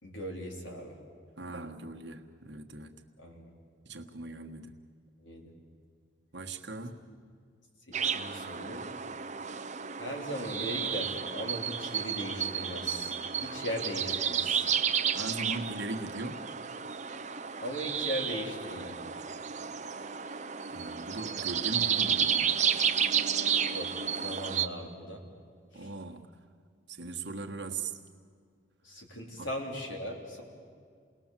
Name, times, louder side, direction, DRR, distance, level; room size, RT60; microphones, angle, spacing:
voice 1, 0.0-1.0 3.2-3.5 5.2-5.5 8.1-8.8 10.0-14.7 17.6-18.9 23.7-25.2 25.7-25.9 28.8-30.4, equal, 80° left, 0 dB, 3.9 m, -38 dB
voice 2, 1.4-3.0 3.8-4.8 6.3-7.0 15.1-16.5 20.7-22.6 25.7-26.3 26.9-28.0 29.4-29.5, right 2 dB, 65° right, 3 dB, 1.5 m, -39 dB
sound 1, 7.9-24.7, right 7 dB, 40° right, 0.8 m, -32 dB
28.5 x 19.5 x 7.5 m, 2.1 s
head